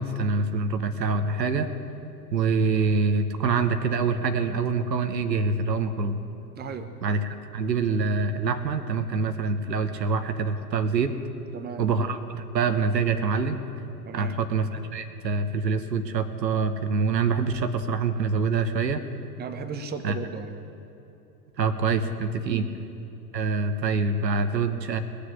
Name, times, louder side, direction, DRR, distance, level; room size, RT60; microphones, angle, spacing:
voice 1, 0.0-1.7 2.3-6.2 7.0-7.2 7.5-11.1 11.8-13.6 14.1-19.0 20.0-20.1 21.6-22.7 23.3-25.0, right 4 dB, 85° right, 8 dB, 1.1 m, -25 dB
voice 2, 6.5-6.9 11.5-11.8 14.0-14.3 19.4-20.5 22.4-22.7, right 6 dB, 20° right, 7 dB, 1.0 m, -35 dB
19.5 x 6.7 x 9.7 m, 2.9 s
hypercardioid pair, 100°, 49 cm